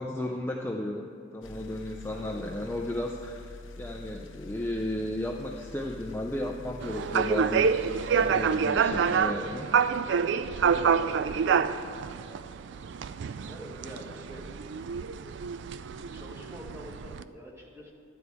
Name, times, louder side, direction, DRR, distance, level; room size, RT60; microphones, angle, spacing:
voice 1, 0.0-9.6 10.6-11.6, left 1 dB, 10° left, 0 dB, 0.4 m, -34 dB
sound 1, 1.4-10.1, left 2 dB, 70° left, 0.5 m, -46 dB
voice 2, 1.9-2.5 9.2-9.5 10.1-10.4 13.5-14.5 15.9-17.9, equal, 10° right, -3 dB, 1.5 m, -45 dB
sound 2, 6.8-17.2, right 6 dB, 60° right, 0.3 m, -27 dB
11.5 x 4.7 x 8.2 m, 2.8 s
head